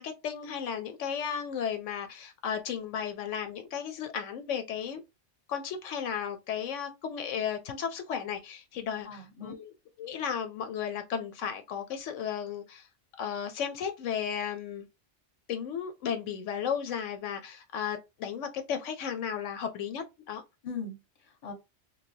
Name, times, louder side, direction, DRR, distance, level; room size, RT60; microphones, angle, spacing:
voice 1, 0.0-5.0 5.5-9.7 10.0-12.9 13.2-14.9 15.5-20.4, left 8 dB, 80° left, 0.9 m, -34 dB
voice 2, 9.0-9.6 20.6-21.5, left 5 dB, 30° left, 1.0 m, -40 dB
3.0 x 2.7 x 2.7 m
omnidirectional pair, 1.3 m